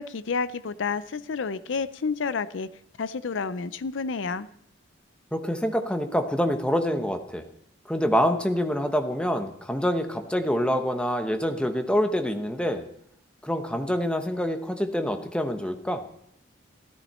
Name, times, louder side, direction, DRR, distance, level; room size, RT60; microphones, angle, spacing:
voice 1, 0.0-2.7 3.0-4.5, left 5 dB, 75° left, 15 dB, 0.5 m, -30 dB
voice 2, 5.3-7.4 7.9-12.8 13.4-16.0, equal, 5° left, 6 dB, 1.0 m, -26 dB
14.0 x 13.0 x 4.3 m, 0.71 s
head